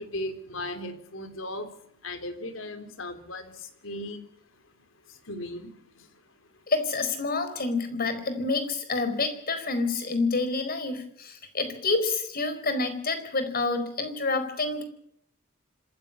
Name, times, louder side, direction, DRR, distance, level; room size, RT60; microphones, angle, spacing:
voice 1, 0.0-1.7 2.0-3.5 3.8-4.2 5.3-5.7, left 1 dB, 75° left, 9 dB, 3.5 m, -36 dB
voice 2, 6.7-14.8, left 3 dB, 50° left, 10 dB, 4.5 m, -28 dB
26.0 x 14.0 x 8.5 m, 0.67 s
head